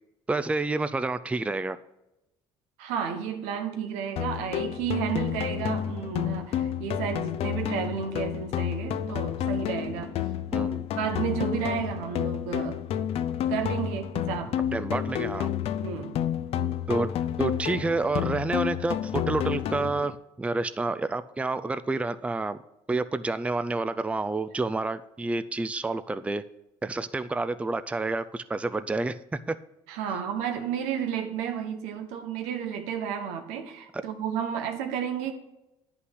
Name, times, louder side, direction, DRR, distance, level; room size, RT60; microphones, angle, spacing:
voice 1, 0.3-1.8 10.5-10.9 14.7-15.5 16.9-17.1 17.4-22.6 22.9-26.4 26.8-29.2 29.5-29.6 33.9-34.0, right 3 dB, 10° right, 13 dB, 0.4 m, -29 dB
voice 2, 2.8-10.1 11.0-12.8 13.5-14.6 15.8-16.2 29.9-35.3, right 8 dB, 90° right, 6 dB, 1.3 m, -32 dB
sound 1, 4.2-20.2, left 10 dB, 60° left, 0.6 m, -30 dB
9.7 x 5.8 x 6.2 m, 0.92 s
supercardioid pair, 85°, 11 cm